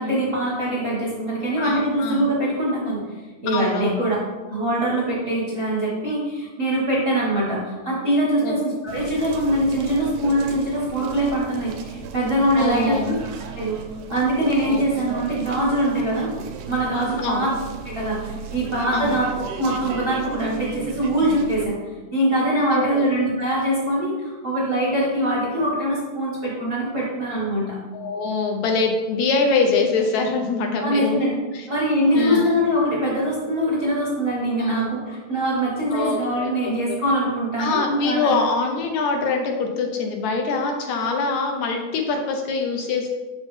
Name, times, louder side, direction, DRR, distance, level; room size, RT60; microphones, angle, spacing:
voice 1, 0.0-4.2 4.5-13.1 13.5-13.8 14.1-16.3 16.7-17.5 17.8-21.8 22.1-27.8 30.7-31.3 31.7-38.4, right 1 dB, 40° right, -7 dB, 0.7 m, -23 dB
voice 2, 1.6-2.3 3.5-4.1 8.4-8.6 12.6-13.1 14.7-14.8 17.2-17.5 18.9-19.2 22.7-23.1 27.9-31.2 31.5-31.7 32.1-32.5 34.6-34.9 35.9-37.0 37.6-43.1, left 4 dB, 75° left, 3 dB, 1.8 m, -24 dB
sound 1, 8.9-21.7, right 6 dB, 80° right, 1.7 m, -36 dB
6.7 x 5.2 x 3.2 m, 1.2 s
omnidirectional pair, 3.5 m